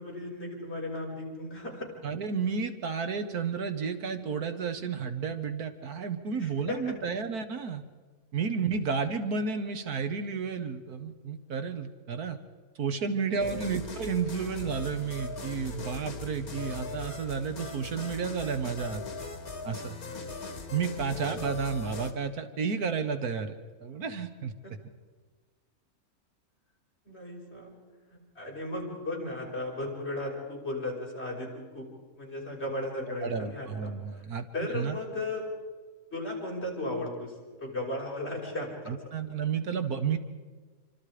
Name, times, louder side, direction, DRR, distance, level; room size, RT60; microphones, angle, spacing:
voice 1, 0.0-1.9 6.4-6.9 13.4-13.5 24.6-24.7 27.0-27.7 28.1-31.9 32.2-34.3 34.5-35.5 36.1-39.0, left 1 dB, 45° left, -3 dB, 6.3 m, -36 dB
voice 2, 2.0-7.8 8.3-12.4 12.8-19.0 19.6-20.0 20.7-24.5 33.2-34.5 34.7-35.0 38.9-40.2, right 5 dB, 85° right, 8 dB, 1.9 m, -32 dB
sound 1, 13.4-22.1, left 3 dB, 75° left, 2.4 m, -39 dB
28.0 x 25.0 x 5.0 m, 1.4 s
omnidirectional pair, 1.6 m